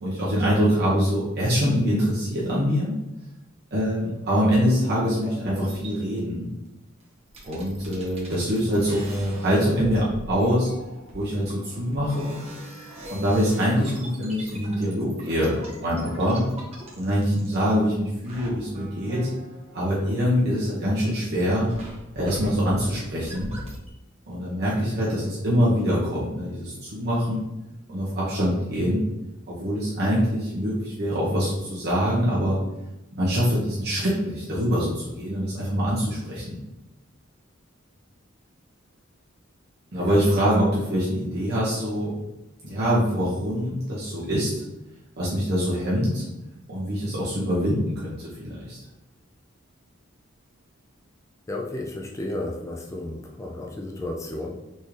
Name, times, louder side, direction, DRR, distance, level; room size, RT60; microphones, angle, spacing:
voice 1, 0.0-3.0 3.7-6.5 7.4-10.7 11.1-12.4 13.1-16.4 16.9-19.3 19.7-21.7 22.1-23.5 24.3-27.5 27.9-29.0 29.5-32.6 33.1-36.6 39.9-42.1 42.6-44.6 45.2-46.2 46.7-48.8, equal, 55° right, -7 dB, 1.2 m, -24 dB
sound 1, 4.2-6.2 7.0-7.1 7.3-18.0 18.2-20.9 21.1-23.9, right 1 dB, 30° right, 1.2 m, -42 dB
voice 2, 39.9-40.3 51.5-54.5, left 1 dB, 15° left, 0 dB, 0.4 m, -33 dB
4.3 x 3.7 x 3.2 m, 0.97 s
head